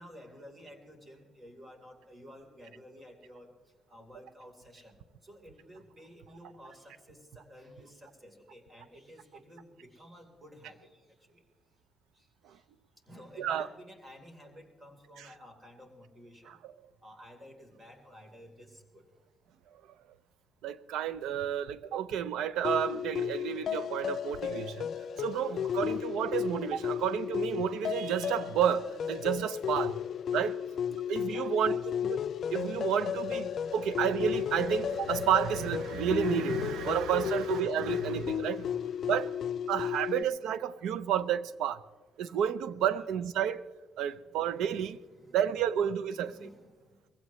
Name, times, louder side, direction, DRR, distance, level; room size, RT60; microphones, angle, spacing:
voice 1, 0.0-3.5 3.9-4.9 5.2-11.4 12.1-12.6 13.1-16.6 17.0-19.0 25.5-25.7 27.0-27.1 31.2-32.0 37.2-37.4 39.2-39.3 42.9-43.1 44.2-44.4 45.0-45.5 46.1-47.0, equal, 25° right, 3.8 m, -53 dB
voice 2, 20.6-24.9 25.2-30.0 30.3-30.6 30.9-31.8 32.0-32.2 32.5-38.7 39.1-39.3 39.7-41.8 42.2-43.6 44.0-45.0 45.3-46.3, right 9 dB, 85° right, 0.6 m, -31 dB
sound 1, 22.6-40.2, left 8 dB, 60° left, 0.4 m, -34 dB
22.0 x 16.0 x 3.1 m
cardioid pair, 90°, 0 cm